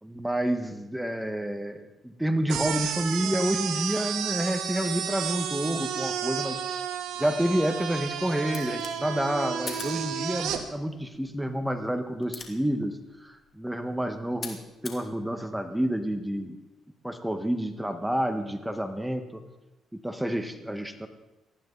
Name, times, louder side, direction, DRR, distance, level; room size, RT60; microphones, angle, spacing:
voice 1, 0.0-6.6 7.2-16.6 17.0-19.4 19.9-21.1, right 1 dB, 5° right, 7 dB, 1.6 m, -29 dB
sound 1, 2.5-10.6, right 8 dB, 85° right, 1.6 m, -32 dB
sound 2, 8.4-15.1, left 4 dB, 45° left, 3.0 m, -46 dB
19.5 x 14.0 x 4.1 m, 1.1 s
cardioid pair, 90°, 0 cm